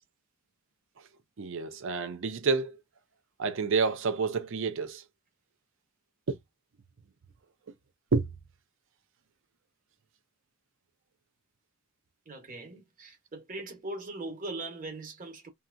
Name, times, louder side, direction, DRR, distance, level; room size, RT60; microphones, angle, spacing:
voice 1, 1.4-2.8 3.4-5.0 6.3-6.4 8.1-8.3, right 4 dB, 60° right, 0.5 m, -29 dB
voice 2, 12.3-15.5, right 2 dB, 40° right, 1.0 m, -40 dB
2.8 x 2.3 x 2.5 m
head